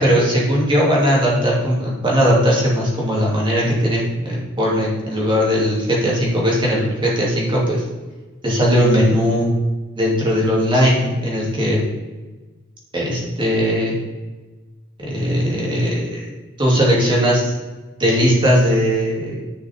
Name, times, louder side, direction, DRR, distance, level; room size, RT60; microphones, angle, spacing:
voice 1, 0.0-7.8 8.4-9.5 10.0-11.9 12.9-13.9 15.1-16.2 16.6-17.5 18.0-19.4, equal, 25° right, -4 dB, 2.6 m, -18 dB
10.5 x 6.0 x 3.6 m, 1.3 s
head